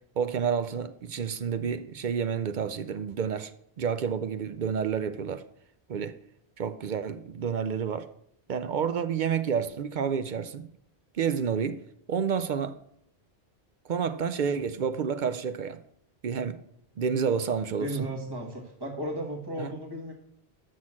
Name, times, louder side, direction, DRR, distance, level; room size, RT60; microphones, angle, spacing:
voice 1, 0.2-3.5 3.8-5.4 5.9-6.2 6.6-8.1 8.5-10.7 11.1-11.8 12.1-12.8 13.9-15.8 16.2-16.6 17.0-18.1 19.6-19.7, right 7 dB, 55° right, 0.6 m, -29 dB
voice 2, 17.8-20.1, right 1 dB, 20° right, 1.4 m, -34 dB
6.3 x 6.2 x 7.3 m
omnidirectional pair, 1.1 m